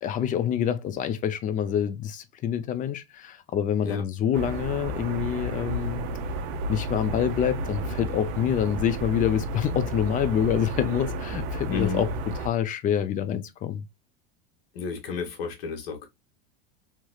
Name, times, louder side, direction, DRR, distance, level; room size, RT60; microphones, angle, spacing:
voice 1, 0.0-6.1 6.7-12.1 12.4-13.8, left 9 dB, 25° left, 0.5 m, -26 dB
sound 1, 4.3-12.5, right 1 dB, 55° right, 0.7 m, -32 dB
voice 2, 11.7-12.1 14.7-16.1, left 5 dB, 80° left, 1.4 m, -32 dB
3.1 x 3.0 x 2.2 m
supercardioid pair, 125°, 30 cm